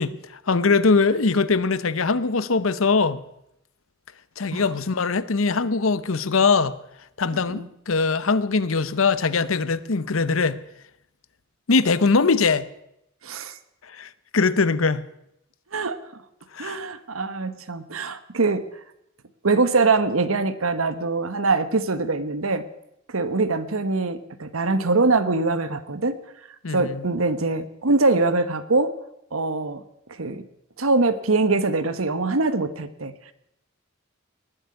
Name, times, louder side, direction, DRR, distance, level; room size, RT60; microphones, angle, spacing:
voice 1, 0.0-3.2 4.4-6.8 7.2-10.6 11.7-12.7 13.8-15.1 16.5-16.8 26.6-27.1, left 4 dB, 75° left, 0.8 m, -22 dB
voice 2, 13.2-13.6 15.7-16.0 16.6-18.6 19.4-22.6 23.1-26.2 26.7-28.9 29.3-29.8 30.2-30.4 30.8-33.1, right 3 dB, 85° right, 1.2 m, -23 dB
19.0 x 8.0 x 9.6 m
head